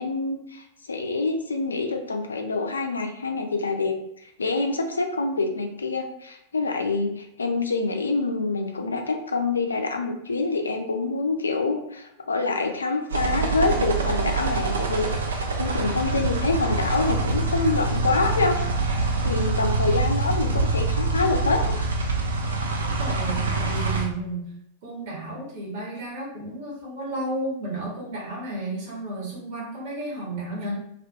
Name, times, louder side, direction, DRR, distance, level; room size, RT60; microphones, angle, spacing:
voice 1, 0.0-4.0 4.2-18.6 19.2-21.7, left 3 dB, 75° left, 4 dB, 0.3 m, -26 dB
sound 1, 13.1-24.1, right 3 dB, 70° right, 0.4 m, -25 dB
voice 2, 22.8-24.5 24.8-30.7, right 2 dB, 50° right, -3 dB, 1.0 m, -32 dB
2.3 x 2.2 x 2.7 m, 0.78 s
figure-of-eight pair, 90°, 0 cm